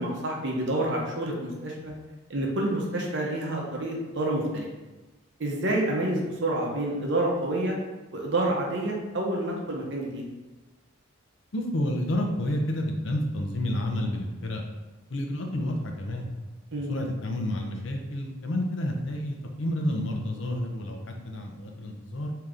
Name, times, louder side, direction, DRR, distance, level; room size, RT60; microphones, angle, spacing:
voice 1, 0.0-1.9 2.3-4.7 5.4-7.8 8.1-10.2 16.7-16.9, right 1 dB, 55° right, -1 dB, 0.7 m, -28 dB
voice 2, 11.5-14.6 15.1-16.3 16.9-22.3, left 1 dB, 60° left, 2 dB, 0.6 m, -30 dB
3.4 x 2.8 x 3.6 m, 1.1 s
head